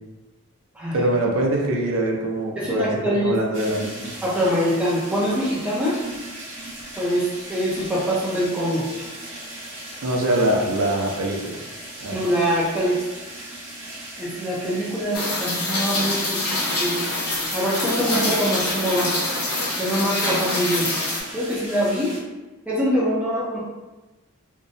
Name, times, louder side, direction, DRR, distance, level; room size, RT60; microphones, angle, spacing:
voice 1, 0.9-4.1 10.0-11.6 12.0-12.2, right 1 dB, 70° right, 0 dB, 0.4 m, -23 dB
voice 2, 2.6-3.4 4.2-6.0 7.0-8.9 12.1-13.0 14.2-17.0 17.5-19.1 19.8-20.9 21.3-22.2 22.7-23.6, equal, 5° right, -6 dB, 0.4 m, -24 dB
sound 1, 3.5-22.2, right 1 dB, 55° right, 1.0 m, -38 dB
Rain, 15.1-21.2, left 2 dB, 80° left, 0.9 m, -25 dB
2.6 x 2.0 x 2.5 m, 1.1 s
head